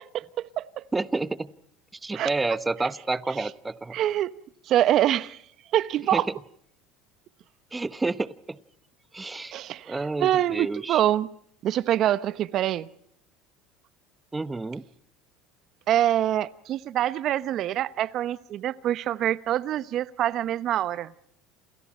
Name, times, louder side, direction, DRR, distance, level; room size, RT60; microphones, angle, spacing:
voice 1, 0.0-0.8 2.1-2.3 3.9-4.3 4.7-5.4 5.7-6.2 9.5-11.3 11.6-12.9 15.9-21.1, right 12 dB, 50° right, 1.0 m, -25 dB
voice 2, 0.9-1.5 2.0-4.0 6.1-6.2 7.7-8.6 9.1-9.5 9.9-11.0 14.3-14.8, right 3 dB, 15° right, 1.1 m, -29 dB
28.5 x 28.5 x 4.4 m
hypercardioid pair, 85°, 0 cm